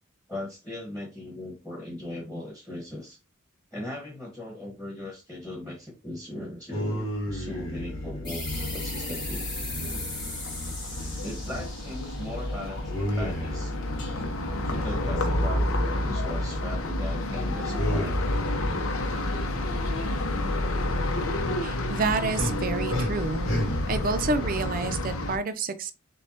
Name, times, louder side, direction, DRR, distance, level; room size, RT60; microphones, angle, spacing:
voice 1, 0.3-3.2 3.7-9.5 11.2-13.7 14.6-18.2, left 1 dB, 5° left, 1.2 m, -38 dB
sound 1, 6.7-25.3, equal, 60° left, 1.6 m, -34 dB
sound 2, 8.2-13.5, left 2 dB, 20° left, 1.8 m, -39 dB
sound 3, 8.5-25.4, left 1 dB, 75° left, 0.7 m, -30 dB
voice 2, 21.6-23.5 23.9-25.9, right 4 dB, 40° right, 0.5 m, -29 dB
6.4 x 2.3 x 2.8 m
head